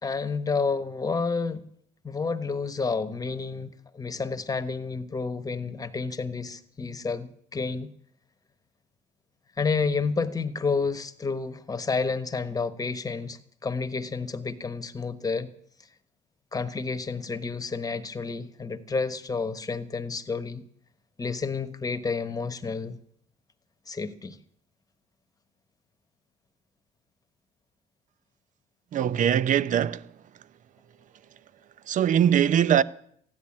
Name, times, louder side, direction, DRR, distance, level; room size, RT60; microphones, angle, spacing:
voice 1, 0.0-1.6 2.0-7.9 9.6-15.5 16.5-20.6 21.2-23.0 23.9-24.4, left 4 dB, 20° left, 1.2 m, -30 dB
voice 2, 28.9-30.2 31.8-32.8, right 9 dB, 50° right, 0.7 m, -22 dB
15.0 x 10.5 x 8.6 m
cardioid pair, 110°, 17 cm